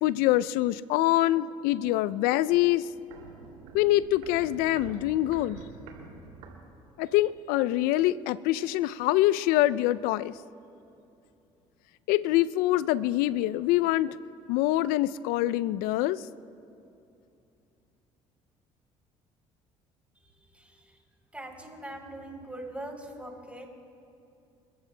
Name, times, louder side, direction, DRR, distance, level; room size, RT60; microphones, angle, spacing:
voice 1, 0.0-2.9 3.7-5.6 7.0-10.3 12.1-14.2 14.5-16.2, left 15 dB, 70° left, 17 dB, 0.4 m, -25 dB
Walk footsteps, 2.5-7.2 7.5-7.6, right 5 dB, 75° right, 2.6 m, -47 dB
voice 2, 20.2-21.0 21.3-23.7, right 1 dB, 10° right, 2 dB, 3.4 m, -42 dB
30.0 x 14.5 x 2.2 m, 2.7 s
hypercardioid pair, 60°, 16 cm